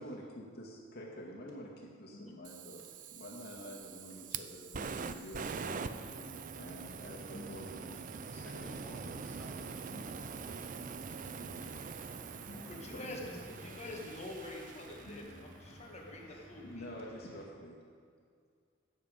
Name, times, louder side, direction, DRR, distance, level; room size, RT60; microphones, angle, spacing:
voice 1, 0.0-6.0 6.5-9.2 9.6-9.9 11.1-11.6 12.3-12.4 12.9-14.1 16.3-17.8, equal, 50° left, -2 dB, 2.1 m, -49 dB
sound 1, 1.5-1.6 1.8-1.9 2.1-2.8 3.4-4.1 4.4-4.5 4.7-5.4 6.0-6.7 7.0-8.0 8.5-9.3 9.6-9.7 9.9-10.6 11.1-11.9 12.1-13.1 13.6-14.5 14.7-15.8 16.2-17.0, left 2 dB, 75° left, 2.3 m, -55 dB
Fire, 2.4-15.6, right 5 dB, 40° right, 0.4 m, -44 dB
voice 2, 8.4-11.1 12.5-13.2, equal, 5° left, -4 dB, 1.5 m, -54 dB
sound 2, 11.6-17.5, equal, 60° right, 3.1 m, -55 dB
voice 3, 12.7-13.4 13.7-16.9, left 1 dB, 35° left, -1 dB, 1.7 m, -46 dB
16.5 x 7.2 x 5.2 m, 2.2 s
head